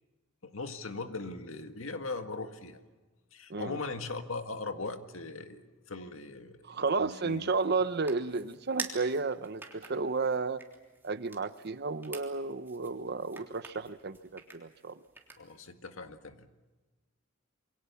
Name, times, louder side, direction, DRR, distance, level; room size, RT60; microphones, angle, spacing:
voice 1, 0.4-2.8 3.3-7.5 15.4-16.5, left 3 dB, 85° left, 7 dB, 1.9 m, -40 dB
voice 2, 3.5-3.8 6.6-10.6 11.0-15.0, right 4 dB, 55° right, 13 dB, 0.9 m, -32 dB
sound 1, 7.0-15.7, right 3 dB, 10° right, 3.4 m, -48 dB
28.0 x 23.5 x 7.1 m, 1.2 s
head